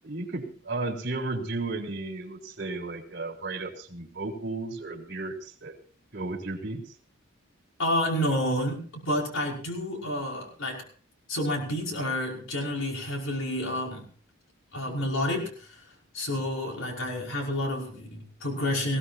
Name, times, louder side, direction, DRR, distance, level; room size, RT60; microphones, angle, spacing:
voice 1, 0.0-5.8 6.1-6.8, right 2 dB, 55° right, 1 dB, 3.8 m, -34 dB
voice 2, 7.8-10.8 11.3-14.1 14.7-15.8 16.1-19.0, left 1 dB, 80° left, -1 dB, 5.4 m, -29 dB
21.0 x 16.5 x 2.8 m, 0.41 s
head